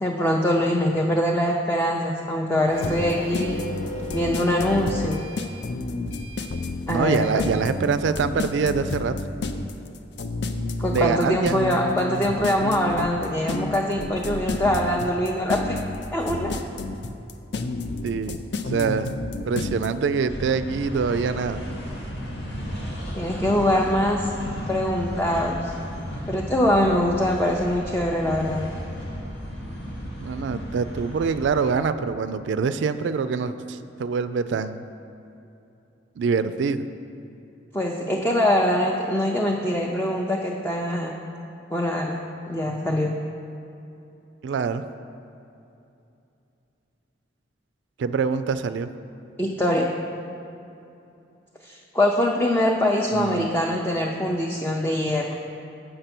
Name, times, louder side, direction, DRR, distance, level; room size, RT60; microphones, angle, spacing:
voice 1, 0.0-3.6 4.1-5.3 6.9-7.5 10.8-15.8 16.1-16.6 23.2-24.3 24.7-25.7 26.3-28.6 37.7-41.1 41.7-42.2 42.5-43.1 49.4-49.9 51.6-55.4, left 1 dB, 10° left, -1 dB, 0.4 m, -23 dB
Printer, 2.7-7.7, equal, 40° left, 1.0 m, -36 dB
sound 1, 2.8-19.9, left 3 dB, 65° left, 0.5 m, -30 dB
voice 2, 6.9-9.1 10.9-11.6 18.0-18.4 18.7-19.1 19.5-21.6 30.2-34.8 36.2-36.9 44.4-44.8 48.0-48.9 53.1-53.5, right 5 dB, 75° right, 11 dB, 0.3 m, -25 dB
sound 2, 20.3-31.7, equal, 85° left, 2.2 m, -34 dB
7.7 x 6.7 x 5.9 m, 2.8 s
head